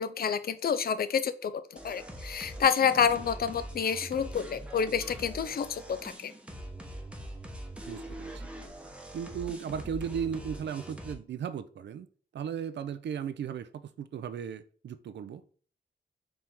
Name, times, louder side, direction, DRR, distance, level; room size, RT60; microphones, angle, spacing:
voice 1, 0.0-6.3, left 7 dB, 55° left, 0.4 m, -29 dB
sound 1, 1.8-11.1, right 1 dB, 5° right, 0.9 m, -43 dB
voice 2, 7.9-8.5 9.1-12.1 12.3-13.7 14.0-15.4, right 7 dB, 75° right, 0.4 m, -36 dB
4.5 x 2.7 x 3.5 m
cardioid pair, 60°, 19 cm